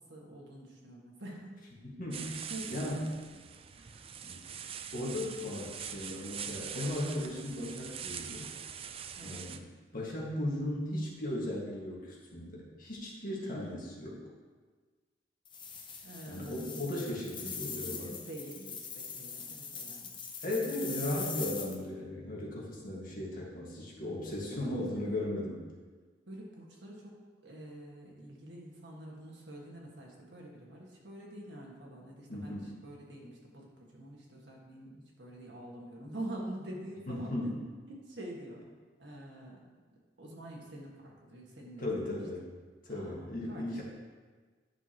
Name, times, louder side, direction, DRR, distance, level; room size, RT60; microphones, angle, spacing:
voice 1, 0.1-1.6 2.1-3.0 3.8-4.1 9.2-9.5 13.4-13.8 16.0-16.6 17.4-17.6 17.9-20.2 24.5-25.2 26.3-27.1 27.4-37.5 37.9-38.6 39.0-41.8 42.9-43.8, right 1 dB, 70° right, -2 dB, 1.7 m, -46 dB
voice 2, 1.8-3.1 4.2-4.4 4.9-8.5 9.2-9.6 9.9-14.2 16.3-18.1 20.4-25.6 32.3-32.7 37.1-37.6 41.8-42.5 42.9-43.8, left 1 dB, 50° left, -4 dB, 1.8 m, -36 dB
sound 1, 2.1-9.6, right 7 dB, 30° right, 0.3 m, -43 dB
sound 2, 15.4-21.8, left 6 dB, 25° left, 0.8 m, -42 dB
10.5 x 6.0 x 2.9 m, 1.4 s
head